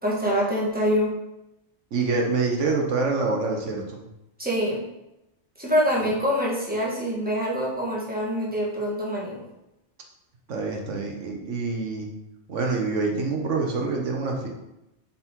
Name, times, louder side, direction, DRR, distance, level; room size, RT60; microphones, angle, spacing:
voice 1, 0.0-1.2 4.4-4.8 5.6-9.4, equal, 10° right, -5 dB, 1.7 m, -25 dB
voice 2, 1.9-4.1 6.0-6.1 10.5-12.1 12.5-14.5, right 4 dB, 90° right, 1 dB, 1.5 m, -26 dB
7.2 x 4.2 x 4.5 m, 0.90 s
omnidirectional pair, 1.2 m